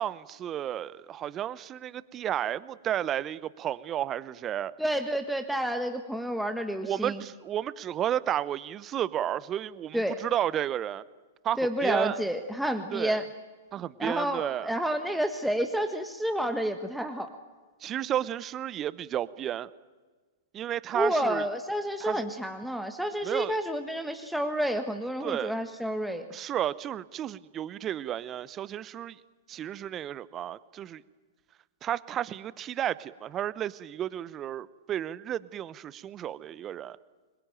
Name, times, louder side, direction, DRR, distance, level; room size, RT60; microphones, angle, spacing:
voice 1, 0.0-4.7 6.8-11.0 11.4-12.2 12.9-13.2 13.7-14.7 17.8-19.7 20.5-21.4 22.0-22.2 23.2-23.6 25.2-25.5 26.3-29.2 29.5-31.0 31.8-37.0, right 11 dB, 25° right, 18 dB, 0.8 m, -32 dB
voice 2, 4.8-7.2 9.9-10.2 11.6-13.3 14.0-17.3 20.9-26.2, equal, ahead, 5 dB, 1.5 m, -30 dB
26.0 x 21.5 x 9.1 m, 1.4 s
figure-of-eight pair, 110°, 0 cm